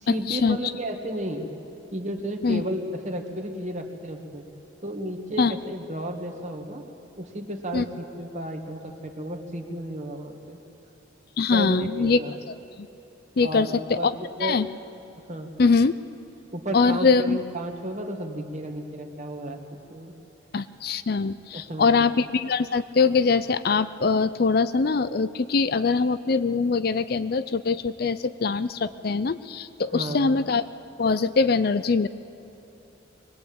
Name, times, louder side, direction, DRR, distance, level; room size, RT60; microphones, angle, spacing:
voice 1, 0.0-1.5 1.9-4.5 4.8-6.8 7.2-10.6 11.5-12.3 13.4-14.6 15.2-15.5 16.5-19.6 19.9-20.1 21.5-21.9 29.9-30.4, right 1 dB, 40° right, 4 dB, 1.9 m, -33 dB
voice 2, 11.4-12.2 13.4-14.1 14.4-14.7 15.6-15.9 16.7-17.4 20.5-30.7 31.0-32.1, left 4 dB, 50° left, 13 dB, 0.5 m, -22 dB
22.5 x 19.5 x 8.7 m, 3.0 s
head